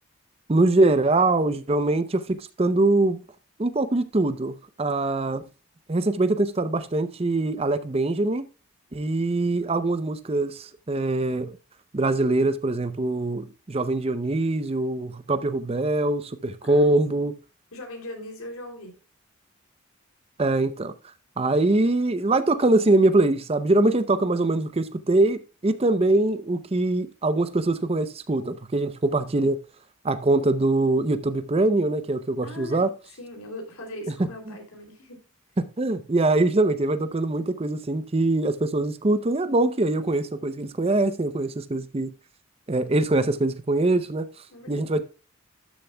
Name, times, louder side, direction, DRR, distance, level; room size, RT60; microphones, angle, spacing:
voice 1, 0.5-3.2 3.6-5.5 5.9-8.4 8.9-11.6 11.9-17.3 20.4-20.9 21.4-29.6 30.0-32.9 34.5-34.6 35.6-42.1 42.7-44.3 44.7-45.0, right 2 dB, 25° right, 0.5 m, -23 dB
voice 2, 16.6-17.3 17.7-18.9 32.4-32.9 33.2-35.2 44.5-44.8, left 1 dB, 80° left, 2.9 m, -40 dB
12.5 x 6.9 x 2.2 m
head